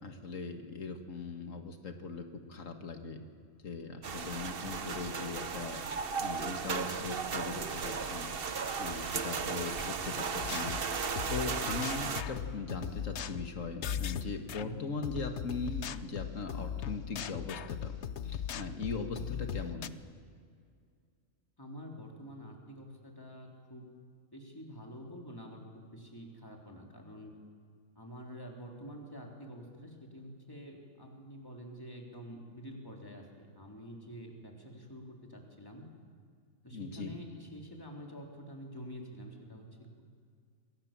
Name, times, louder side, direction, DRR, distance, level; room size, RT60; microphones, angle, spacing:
voice 1, 0.0-3.3 3.6-5.8 6.2-8.3 8.8-10.8 11.3-18.0 18.2-19.9 36.7-37.1, left 4 dB, 90° left, 5 dB, 2.1 m, -40 dB
sound 1, 4.0-12.2, right 5 dB, 50° right, 1.2 m, -36 dB
sound 2, 10.4-14.6 15.0-19.9, left 9 dB, 65° left, 1.0 m, -39 dB
voice 2, 21.6-23.9 24.3-27.3 28.0-35.9 36.6-39.7, equal, 15° left, 0 dB, 3.6 m, -47 dB
27.5 x 22.0 x 7.5 m, 2.2 s
omnidirectional pair, 1.3 m